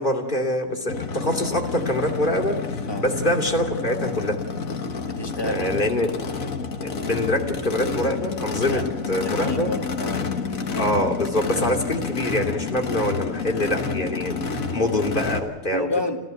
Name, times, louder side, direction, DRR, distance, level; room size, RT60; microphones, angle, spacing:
voice 1, 0.0-2.6 3.0-4.4 5.4-6.1 6.8-9.7 10.8-15.9, left 1 dB, 35° left, 2 dB, 2.8 m, -25 dB
Race car auto racing / Idling / Accelerating revving vroom, 0.9-15.4, left 4 dB, 85° left, 2.0 m, -29 dB
voice 2, 5.1-5.8 8.6-8.8 9.2-10.3 15.7-16.2, left 2 dB, 20° left, 4 dB, 2.0 m, -30 dB
28.0 x 15.5 x 8.1 m, 1.2 s
omnidirectional pair, 1.4 m